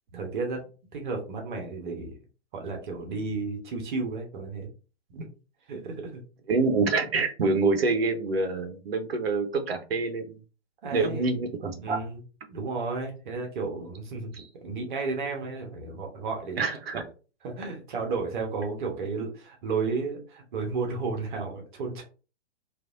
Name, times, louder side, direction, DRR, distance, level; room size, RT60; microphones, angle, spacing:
voice 1, 0.1-0.6 0.9-2.1 2.5-4.7 5.7-6.2 10.8-11.3 11.8-12.2 12.5-16.6 17.4-22.0, right 4 dB, 45° right, 1 dB, 1.1 m, -33 dB
voice 2, 6.5-10.4 10.9-12.0 14.3-14.4 16.6-17.0, right 3 dB, 60° right, 6 dB, 0.9 m, -26 dB
3.2 x 2.5 x 2.5 m, 0.34 s
figure-of-eight pair, 120°, 33 cm